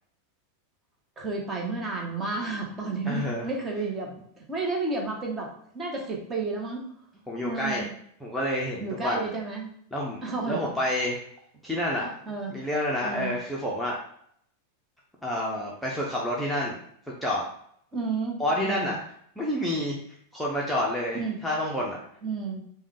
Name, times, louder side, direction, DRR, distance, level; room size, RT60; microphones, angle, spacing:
voice 1, 1.2-6.9 7.4-7.9 8.8-9.7 10.2-10.7 12.0-12.5 13.0-13.4 17.9-18.9 21.1-21.4 22.2-22.6, right 3 dB, 20° right, 0 dB, 1.2 m, -32 dB
voice 2, 3.0-3.4 7.3-7.9 8.2-9.2 9.9-10.2 10.5-11.2 11.6-12.1 12.5-14.0 15.2-16.8 17.1-17.4 18.4-19.0 19.4-20.0 20.3-22.0, left 1 dB, ahead, -5 dB, 0.8 m, -28 dB
5.2 x 2.4 x 3.3 m, 0.67 s
figure-of-eight pair, 90°, 0 cm